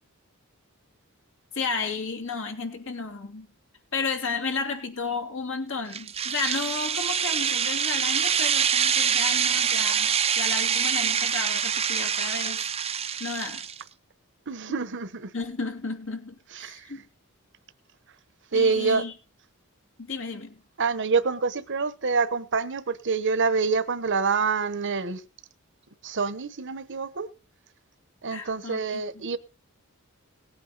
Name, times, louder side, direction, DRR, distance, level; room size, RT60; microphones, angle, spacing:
voice 1, 1.5-3.5 3.9-12.7 13.2-13.7 15.3-17.0 18.5-19.1 20.0-20.5 28.3-29.0, left 4 dB, 60° left, 2.6 m, -33 dB
sound 1, 5.9-13.8, right 8 dB, 25° right, 0.7 m, -25 dB
voice 2, 14.5-15.3 16.6-16.8 18.5-19.0 20.8-25.2 26.0-27.3 28.2-29.4, right 4 dB, 55° right, 1.1 m, -26 dB
18.5 x 8.9 x 4.0 m
head